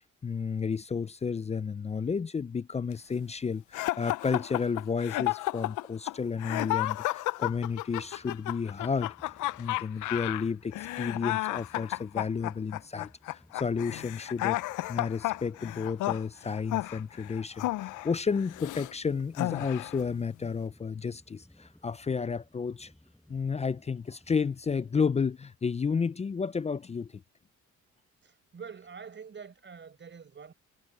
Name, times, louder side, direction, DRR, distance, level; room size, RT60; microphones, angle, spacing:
voice 1, 0.2-9.1 9.6-14.6 14.9-22.9 23.3-27.2, left 5 dB, 20° left, 0.4 m, -32 dB
sound 1, 3.7-18.9 19.3-20.0, left 17 dB, 80° left, 0.5 m, -32 dB
sound 2, 8.0-25.4, left 1 dB, 5° left, 7.3 m, -60 dB
voice 2, 28.2-30.5, right 6 dB, 40° right, 5.0 m, -46 dB
cardioid pair, 90°, 30 cm